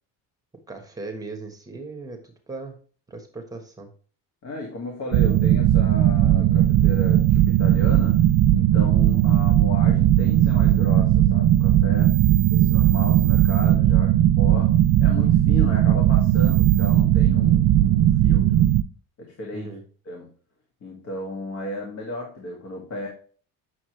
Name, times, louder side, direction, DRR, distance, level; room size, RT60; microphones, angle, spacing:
voice 1, 0.7-2.7 3.1-3.9 12.3-12.8 19.5-19.8, right 3 dB, 10° right, 3 dB, 1.4 m, -38 dB
voice 2, 4.4-12.1 12.5-18.7 19.2-19.7 20.1-20.3 20.8-23.1, left 2 dB, 40° left, 1 dB, 2.0 m, -35 dB
sound 1, 5.1-18.8, right 12 dB, 50° right, 0.5 m, -18 dB
8.4 x 6.5 x 3.2 m, 0.42 s
cardioid pair, 165°, 38 cm